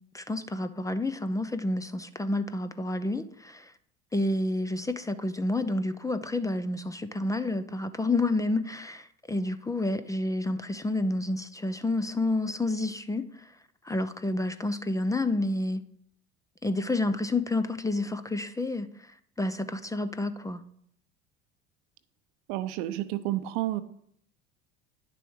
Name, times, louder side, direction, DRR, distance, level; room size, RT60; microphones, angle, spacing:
voice 1, 0.1-3.7 4.1-13.5 13.8-15.8 16.6-19.1 19.4-20.6, left 2 dB, 10° left, 0.6 m, -29 dB
voice 2, 22.5-23.8, right 14 dB, 60° right, 0.8 m, -30 dB
10.0 x 6.9 x 4.7 m
hypercardioid pair, 70°, 33 cm